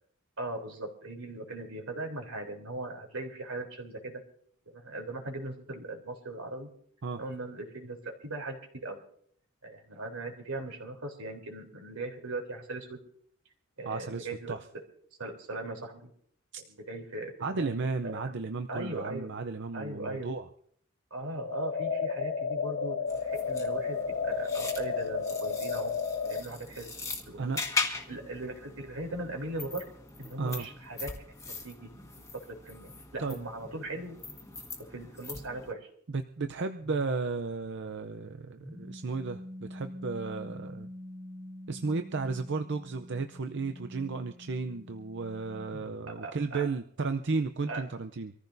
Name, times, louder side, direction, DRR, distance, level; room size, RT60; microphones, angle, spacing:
voice 1, 0.4-4.2 4.7-6.7 7.2-9.0 9.6-13.0 13.8-14.5 15.2-16.1 16.7-18.3 18.7-19.3 19.7-20.3 21.1-25.9 26.2-26.9 27.3-27.4 28.1-29.8 30.2-31.1 31.6-34.2 34.8-35.9 46.2-46.7 47.7-47.8, right 2 dB, 85° right, 2 dB, 3.5 m, -39 dB
voice 2, 13.9-14.6 17.4-20.5 27.4-27.6 30.4-30.7 33.2-33.4 36.1-40.9 41.7-48.3, right 4 dB, 55° right, 8 dB, 0.6 m, -34 dB
sound 1, 21.4-26.4, left 5 dB, 50° left, 0.6 m, -32 dB
sound 2, 23.1-35.7, left 4 dB, 15° left, 1.5 m, -40 dB
sound 3, 36.8-46.0, left 1 dB, 20° right, 2.3 m, -46 dB
25.5 x 14.5 x 2.7 m, 0.63 s
head